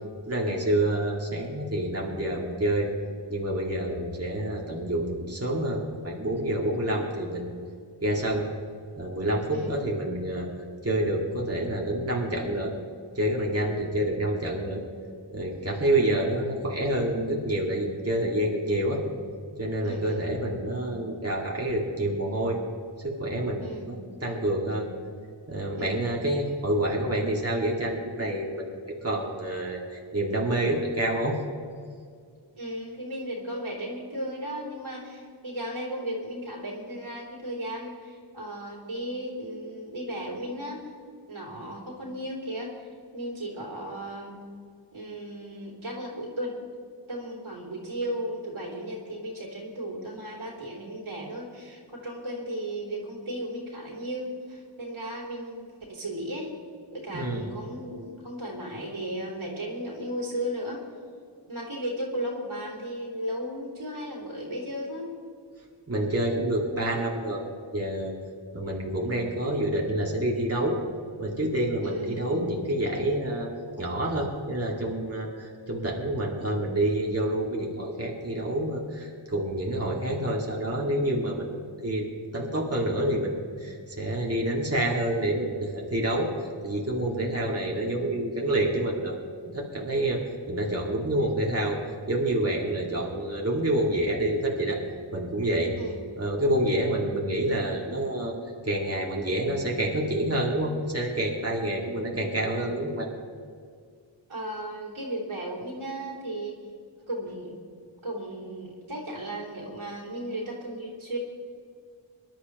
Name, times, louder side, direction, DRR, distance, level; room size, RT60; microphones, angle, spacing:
voice 1, 0.3-2.9 3.3-7.5 8.0-8.4 9.0-10.5 10.8-12.7 13.2-14.8 15.3-19.0 19.6-22.6 23.0-24.9 25.5-31.4 57.1-57.5 65.9-67.4 67.7-68.1 68.5-70.8 71.2-86.3 86.6-89.2 89.4-91.8 92.1-94.8 95.1-95.7 96.2-98.4 98.6-103.1, right 1 dB, 30° right, -2 dB, 2.3 m, -28 dB
voice 2, 19.8-20.3 23.6-23.9 25.7-26.0 32.5-40.8 41.3-44.4 44.9-46.5 47.1-56.5 56.9-60.8 61.5-65.1 71.8-72.2 95.8-96.1 104.3-106.6 107.1-107.6 108.0-111.2, right 1 dB, 90° right, -3 dB, 3.4 m, -35 dB
24.5 x 11.5 x 3.1 m, 2.1 s
wide cardioid pair, 80°, 47 cm